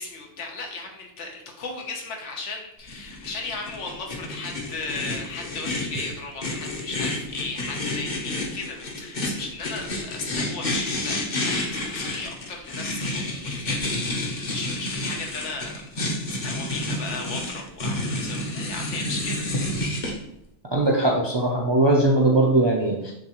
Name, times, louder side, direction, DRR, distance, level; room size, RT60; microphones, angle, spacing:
voice 1, 0.0-15.8 16.4-19.4, left 3 dB, 90° left, 1 dB, 1.2 m, -36 dB
sound 1, 2.9-20.1, left 1 dB, 45° left, 0.8 m, -30 dB
voice 2, 20.7-23.1, right 2 dB, 45° right, -2 dB, 0.3 m, -20 dB
6.2 x 2.3 x 2.9 m, 0.78 s
omnidirectional pair, 1.2 m